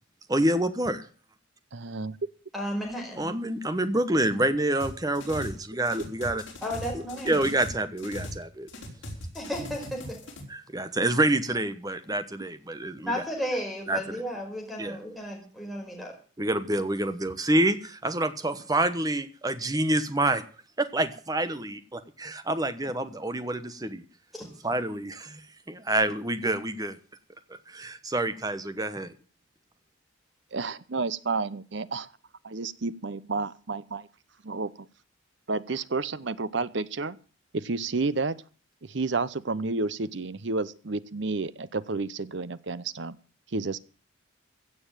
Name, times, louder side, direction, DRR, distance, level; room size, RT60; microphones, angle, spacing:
voice 1, 0.3-1.0 3.2-6.4 6.9-8.7 10.5-13.1 13.9-14.2 14.8-15.0 16.4-20.4 20.8-24.0 24.6-25.4 25.7-27.0 27.7-29.1, right 1 dB, 20° right, 11 dB, 1.1 m, -27 dB
voice 2, 1.7-2.2 30.5-32.1 32.4-34.1 34.4-34.9 35.5-37.2 37.5-38.4 38.8-43.2 43.5-43.8, right 3 dB, 60° right, 16 dB, 0.8 m, -31 dB
voice 3, 2.5-3.3 6.6-7.5 9.3-10.2 13.0-16.1 24.3-24.5, equal, ahead, 1 dB, 5.1 m, -33 dB
sound 1, 4.8-5.6 5.8-8.4 8.7-10.4, left 1 dB, 60° left, 4.7 m, -39 dB
16.0 x 7.0 x 9.0 m, 0.41 s
head